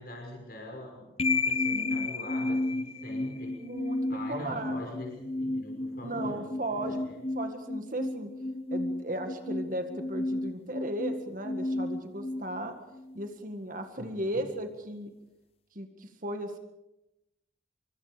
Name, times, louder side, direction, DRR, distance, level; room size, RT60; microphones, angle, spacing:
voice 1, 0.0-3.6 4.1-6.4 6.7-7.2 14.0-14.4, left 1 dB, 55° left, 1 dB, 5.9 m, -43 dB
sound 1, 1.2-13.3, left 2 dB, 35° left, 0.8 m, -32 dB
voice 2, 1.7-2.1 3.5-4.8 6.0-7.0 7.4-8.3 8.7-12.8 13.1-15.1 15.8-16.6, right 1 dB, 45° right, 6 dB, 1.9 m, -36 dB
26.5 x 24.5 x 5.1 m, 0.94 s
head